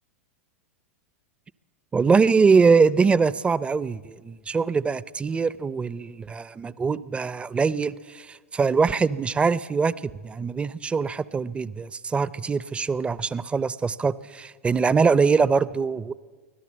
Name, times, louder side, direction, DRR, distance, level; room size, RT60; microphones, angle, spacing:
voice 1, 1.9-16.1, right 5 dB, 15° right, 19 dB, 0.5 m, -23 dB
24.0 x 16.0 x 7.5 m, 1.5 s
hypercardioid pair, 100°, 8 cm